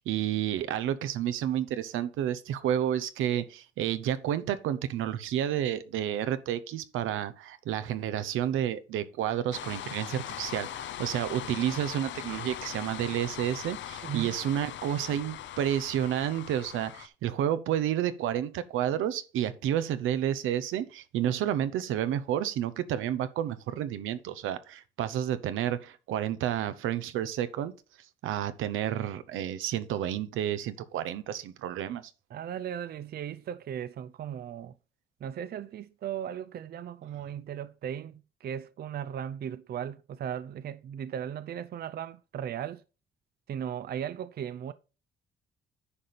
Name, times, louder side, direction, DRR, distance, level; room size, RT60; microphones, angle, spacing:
voice 1, 0.0-27.7 28.2-32.0, right 11 dB, 85° right, 0.8 m, -30 dB
sound 1, 9.5-17.1, left 11 dB, 70° left, 0.7 m, -40 dB
voice 2, 14.0-14.4 32.3-34.7 35.2-42.8 43.5-44.7, right 9 dB, 50° right, 0.5 m, -37 dB
9.9 x 5.1 x 4.2 m
cardioid pair, 90°, 20 cm